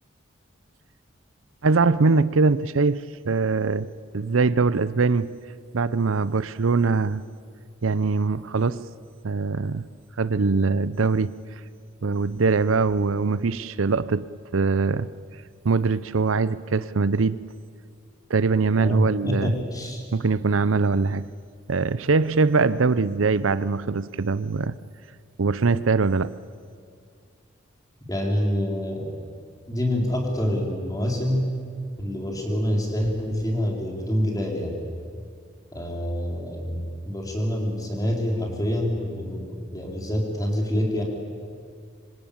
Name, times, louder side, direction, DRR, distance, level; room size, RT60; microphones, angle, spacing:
voice 1, 1.6-3.9 4.1-5.3 5.7-7.2 7.8-8.9 9.2-9.9 10.2-11.3 12.0-14.3 14.5-15.1 15.6-17.4 18.3-19.5 20.1-21.3 21.7-24.8 25.4-26.3, right 4 dB, 85° right, 0.6 m, -22 dB
voice 2, 18.7-20.0 28.1-29.2 29.7-31.5 32.0-34.8 35.7-41.0, equal, 20° left, 4.3 m, -26 dB
25.5 x 25.0 x 8.8 m
head